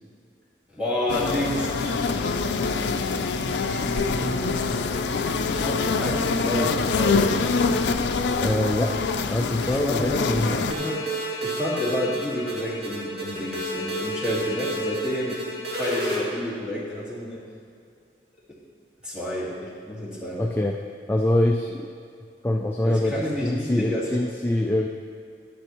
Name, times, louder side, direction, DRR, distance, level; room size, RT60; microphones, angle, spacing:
voice 1, 0.7-3.4 3.8-4.9 5.5-7.5 9.7-11.0 11.4-15.4 15.7-17.4 19.0-20.6 22.8-24.1, left 1 dB, 5° right, -7 dB, 2.0 m, -30 dB
sound 1, 1.1-10.7, left 4 dB, 80° left, 0.4 m, -25 dB
voice 2, 8.4-9.0 9.3-10.7 20.4-20.8 21.1-21.9 22.4-24.9, left 1 dB, 10° left, 1 dB, 0.3 m, -24 dB
sound 2, 10.7-16.2, equal, 60° right, 2.2 m, -30 dB
10.5 x 10.0 x 3.1 m, 2.3 s
head